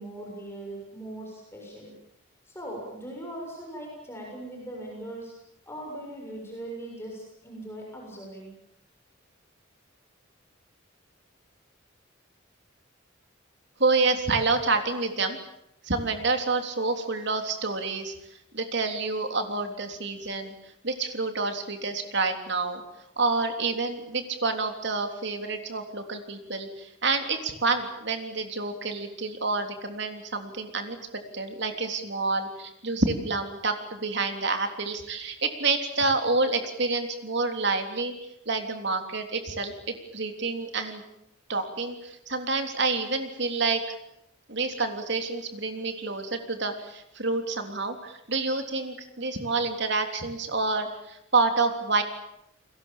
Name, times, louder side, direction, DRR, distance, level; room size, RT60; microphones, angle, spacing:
voice 1, 0.0-1.9 2.5-5.3 5.7-8.5, right 1 dB, 10° left, -1 dB, 7.0 m, -40 dB
voice 2, 13.8-15.4 15.8-18.1 18.5-20.5 20.8-22.8 23.2-31.0 31.3-38.1 38.4-41.0 41.5-43.8 44.5-52.0, right 3 dB, 55° right, 6 dB, 3.5 m, -28 dB
30.0 x 22.0 x 7.4 m, 0.81 s
head